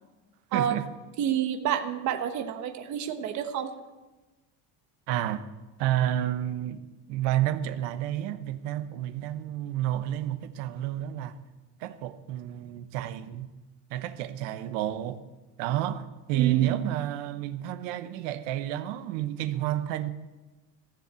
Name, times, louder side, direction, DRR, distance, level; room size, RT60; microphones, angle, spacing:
voice 1, 0.5-0.9 5.1-5.4 5.8-6.8 7.1-11.4 11.8-13.5 13.9-15.2 15.6-20.1, right 12 dB, 85° right, 1.1 m, -30 dB
voice 2, 1.2-3.7 16.3-16.8, right 10 dB, 40° right, 1.2 m, -28 dB
15.0 x 7.2 x 8.2 m
cardioid pair, 175°, 42 cm